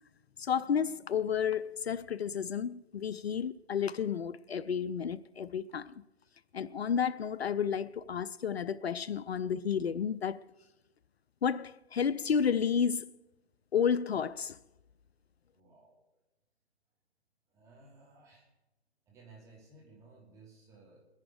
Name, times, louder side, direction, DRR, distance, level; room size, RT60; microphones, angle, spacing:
voice 1, 0.4-5.9 6.5-10.4 11.4-13.1 13.7-14.6, left 7 dB, 70° left, 0.6 m, -31 dB
voice 2, 15.5-16.0 17.5-18.5 19.1-21.1, right 3 dB, 10° right, 2.6 m, -57 dB
21.5 x 10.5 x 5.0 m
figure-of-eight pair, 150°, 33 cm